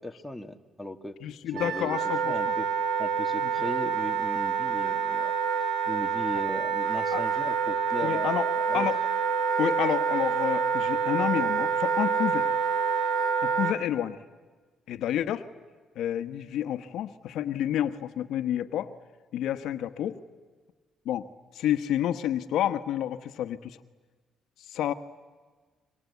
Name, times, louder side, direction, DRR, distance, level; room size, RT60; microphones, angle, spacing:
voice 1, 0.0-1.2 1.5-2.7 3.0-5.3 5.9-8.4 8.7-8.9, left 1 dB, 5° left, 4 dB, 1.8 m, -37 dB
voice 2, 1.2-2.5 3.4-3.7 7.1-7.2 8.0-8.5 8.7-9.0 9.6-12.5 13.4-14.2 14.9-15.4 16.0-18.9 19.3-20.2 21.0-21.2 21.5-23.8 24.7-24.9, left 11 dB, 80° left, 10 dB, 1.1 m, -29 dB
Wind instrument woodwind instrument, 1.5-13.7, right 6 dB, 85° right, 1.9 m, -27 dB
29.5 x 24.5 x 8.3 m, 1.4 s
cardioid pair, 90°, 0 cm